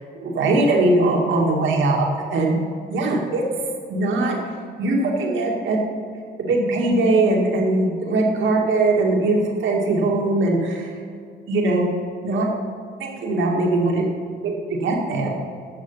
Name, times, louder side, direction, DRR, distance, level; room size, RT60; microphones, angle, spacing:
voice 1, 0.1-2.6 2.9-3.4 3.9-4.4 4.8-5.8 6.4-11.0 11.5-11.9 12.2-12.5 13.0-14.0 14.4-15.3, right 2 dB, 75° right, -1 dB, 2.1 m, -20 dB
11.5 x 6.6 x 5.6 m, 2.3 s
cardioid pair, 90°, 20 cm